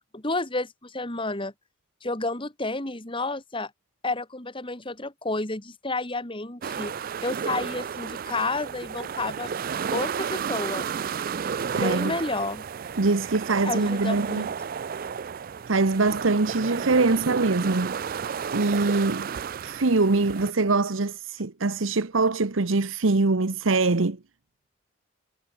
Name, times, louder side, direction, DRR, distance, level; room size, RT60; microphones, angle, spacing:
voice 1, 0.1-1.5 2.0-3.7 4.0-6.9 7.2-9.5 9.9-10.9 11.7-12.6 13.6-14.5, left 2 dB, 25° left, 2.6 m, -30 dB
sound 1, 6.6-20.5, right 7 dB, 45° right, 0.4 m, -32 dB
voice 2, 11.7-12.1 13.0-14.5 15.7-17.9 18.5-19.3 19.6-24.2, right 3 dB, 90° right, 1.1 m, -23 dB
head